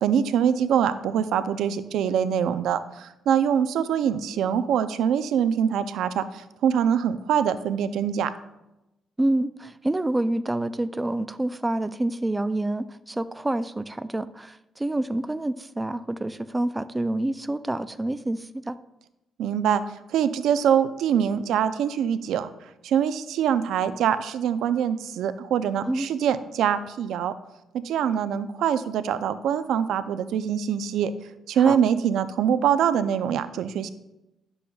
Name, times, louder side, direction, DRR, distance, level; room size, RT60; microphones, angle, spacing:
voice 1, 0.0-8.3 19.4-19.8 20.1-22.5 22.8-27.3 27.8-31.1 31.5-33.9, right 8 dB, 80° right, 12 dB, 0.4 m, -24 dB
voice 2, 9.2-18.8 25.8-26.1 31.6-31.8, right 1 dB, 15° right, 12 dB, 0.3 m, -27 dB
11.5 x 6.9 x 2.3 m, 0.91 s
cardioid pair, 90°, 0 cm